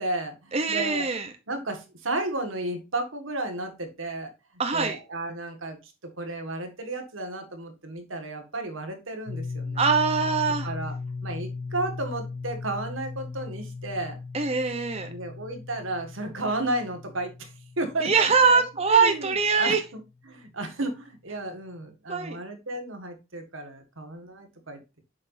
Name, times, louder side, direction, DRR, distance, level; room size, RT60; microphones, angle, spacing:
voice 1, 0.0-1.1 1.5-4.3 4.7-9.9 10.6-11.0 11.2-14.2 15.1-25.0, right 2 dB, 85° right, 6 dB, 1.9 m, -33 dB
voice 2, 0.5-1.3 4.6-5.0 9.8-10.7 14.3-15.1 18.0-19.8 22.1-22.4, right 5 dB, 30° right, 6 dB, 0.8 m, -23 dB
sound 1, 9.3-19.8, left 4 dB, 75° left, 0.7 m, -38 dB
7.7 x 5.9 x 2.7 m, 0.26 s
head